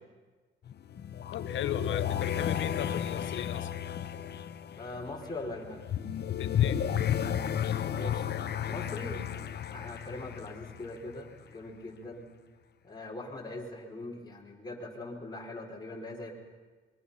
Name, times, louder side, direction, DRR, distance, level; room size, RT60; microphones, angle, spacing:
sound 1, 0.7-11.4, left 9 dB, 55° left, 1.1 m, -33 dB
voice 1, 1.3-3.7 6.3-6.8, left 10 dB, 75° left, 11 dB, 1.2 m, -37 dB
voice 2, 4.8-5.8 7.9-8.2 8.6-9.2 9.7-12.3 12.8-16.3, left 2 dB, 20° left, -2 dB, 5.1 m, -41 dB
26.0 x 22.5 x 5.8 m, 1.3 s
cardioid pair, 90°, 20 cm